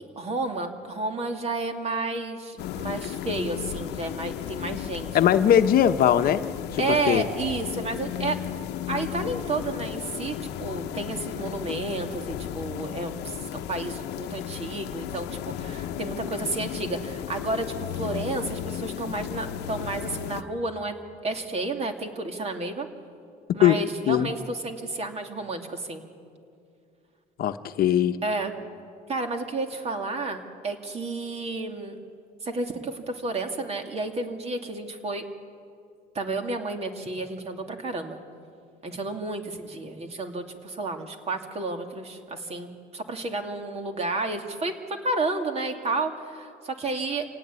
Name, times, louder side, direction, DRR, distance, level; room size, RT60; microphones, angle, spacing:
voice 1, 0.2-5.1 6.8-8.4 8.9-20.9 21.2-22.9 23.5-26.0 28.2-28.5 29.1-32.0 32.4-35.2 36.1-38.2 38.8-47.2, right 2 dB, 40° right, 5 dB, 2.6 m, -31 dB
sound 1, 2.6-20.4, left 11 dB, 85° left, 0.9 m, -34 dB
voice 2, 5.1-6.4 6.7-6.8 7.1-7.2 23.6-23.8 24.1-24.3 27.4-28.2, left 10 dB, 60° left, 9 dB, 1.0 m, -20 dB
27.0 x 17.5 x 9.7 m, 2.4 s
cardioid pair, 110°, 17 cm